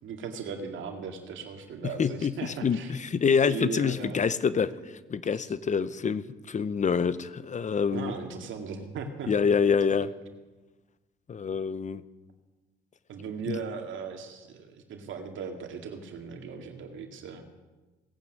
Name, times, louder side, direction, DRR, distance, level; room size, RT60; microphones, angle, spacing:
voice 1, 0.0-2.9 3.5-4.2 7.9-9.3 13.1-17.4, right 5 dB, 75° right, 4 dB, 2.1 m, -38 dB
voice 2, 2.0-8.1 9.3-10.1 11.3-12.0 13.5-13.6, left 6 dB, 40° left, 15 dB, 0.7 m, -26 dB
18.5 x 9.1 x 6.6 m, 1.2 s
cardioid pair, 90°, 20 cm